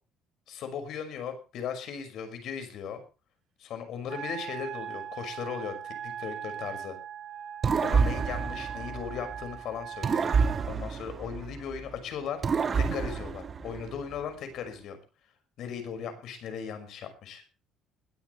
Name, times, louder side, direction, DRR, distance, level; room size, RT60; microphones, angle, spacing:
voice 1, 0.5-3.0 3.6-7.0 7.8-10.3 10.7-12.4 12.7-15.0 15.6-17.4, left 7 dB, 60° left, 8 dB, 6.0 m, -37 dB
Wind instrument woodwind instrument, 4.1-10.7, right 9 dB, 45° right, 4.3 m, -40 dB
sound 1, 7.6-9.5 10.0-11.9 12.4-14.1, right 5 dB, 30° right, 1.4 m, -28 dB
21.5 x 13.0 x 3.4 m, 0.33 s
cardioid pair, 145°, 0 cm